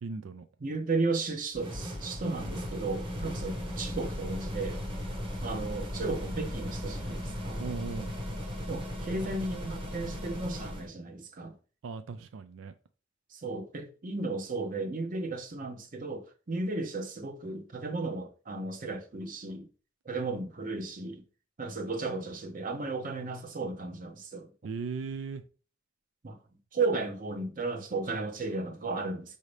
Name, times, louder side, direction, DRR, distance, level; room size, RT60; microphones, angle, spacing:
voice 1, 0.0-0.5 7.6-8.1 11.8-12.7 24.6-25.4, right 5 dB, 90° right, 0.4 m, -37 dB
voice 2, 0.6-4.8 5.4-7.6 8.7-11.5 13.3-19.7 20.0-21.2 21.6-24.5 26.2-26.4 26.7-29.4, right 3 dB, 45° right, 0.7 m, -34 dB
sound 1, 1.5-10.9, equal, 25° right, 1.1 m, -37 dB
5.0 x 2.7 x 3.2 m
head